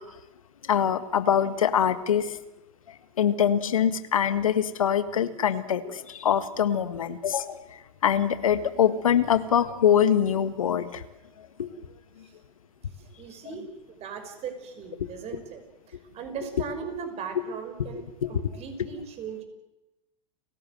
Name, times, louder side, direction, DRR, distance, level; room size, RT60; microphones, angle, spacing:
voice 1, 0.7-2.4 3.2-7.6 8.0-11.0 11.6-11.7 18.2-18.3, left 9 dB, 85° left, 12 dB, 1.7 m, -24 dB
voice 2, 13.2-15.6 15.9-18.0 18.3-19.4, right 6 dB, 40° right, 7 dB, 5.8 m, -38 dB
30.0 x 16.5 x 7.8 m, 0.96 s
hypercardioid pair, 105°, 17 cm